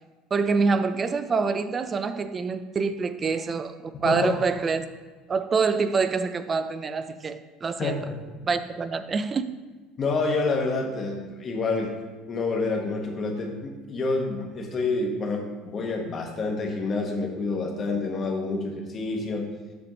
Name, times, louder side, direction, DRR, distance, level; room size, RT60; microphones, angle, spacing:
voice 1, 0.3-4.9 5.3-8.0 8.4-9.5, right 4 dB, 20° right, 0.3 m, -26 dB
voice 2, 4.0-4.3 7.8-8.2 10.0-11.9 12.3-19.5, left 3 dB, 30° left, 1.0 m, -28 dB
6.9 x 3.4 x 6.1 m
cardioid pair, 160°, 0 cm